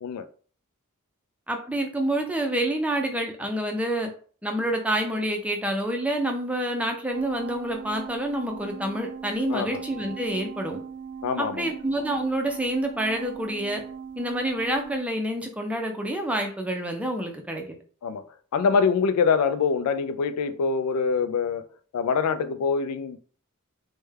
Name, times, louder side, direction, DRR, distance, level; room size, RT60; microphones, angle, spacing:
voice 1, 1.5-4.1 4.4-10.8 11.4-13.8 14.2-17.8, right 1 dB, 5° right, 0.5 m, -28 dB
sound 1, 7.1-15.0, right 6 dB, 55° right, 0.5 m, -39 dB
voice 2, 9.5-9.8 11.2-11.6 18.0-18.2 18.5-21.6 21.9-23.2, left 5 dB, 85° left, 0.3 m, -24 dB
3.3 x 2.2 x 3.2 m
head